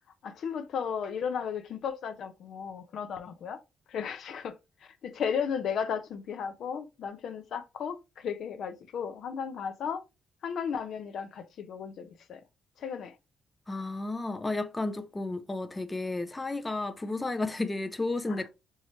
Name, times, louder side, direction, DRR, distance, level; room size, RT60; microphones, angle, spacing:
voice 1, 0.2-3.6 3.9-4.5 5.0-10.0 10.4-12.4 12.8-13.1 18.3-18.5, left 7 dB, 65° left, 0.6 m, -34 dB
voice 2, 13.7-18.5, left 2 dB, 15° left, 0.4 m, -32 dB
4.6 x 2.8 x 3.0 m
cardioid pair, 115°, 0 cm